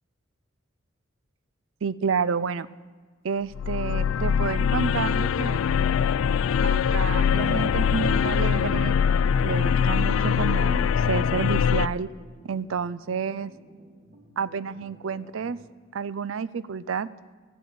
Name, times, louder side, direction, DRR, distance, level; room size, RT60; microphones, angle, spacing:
voice 1, 1.8-2.7 3.2-5.6 6.6-9.0 9.4-12.1 12.4-13.5 14.4-15.6 15.9-17.1, right 6 dB, 80° right, 17 dB, 0.5 m, -29 dB
sound 1, 3.5-11.9, left 7 dB, 85° left, 0.3 m, -23 dB
sound 2, 9.0-15.6, right 1 dB, 45° right, 2.6 m, -52 dB
14.5 x 8.1 x 8.5 m, 1.5 s
head